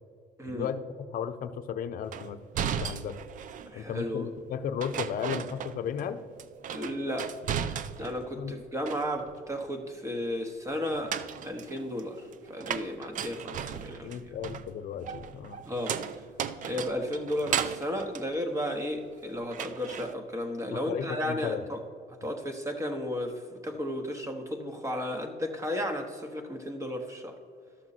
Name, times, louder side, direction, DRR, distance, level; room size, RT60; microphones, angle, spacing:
voice 1, 0.4-2.4 2.8-3.2 3.7-6.2 8.3-8.5 14.0-15.6 20.7-21.6, left 8 dB, 55° left, 10 dB, 0.6 m, -35 dB
sound 1, 2.1-3.8 4.8-6.1 6.4-8.3 8.6-9.4 10.8-19.1 19.5-20.1, right 8 dB, 50° right, 0.5 m, -36 dB
voice 2, 3.7-4.3 6.7-7.3 8.0-11.2 11.4-12.2 12.5-14.1 15.6-16.0 16.6-21.8 22.2-27.4, left 1 dB, 20° right, 4 dB, 1.0 m, -33 dB
13.0 x 6.2 x 4.2 m, 2.2 s
cardioid pair, 110°, 17 cm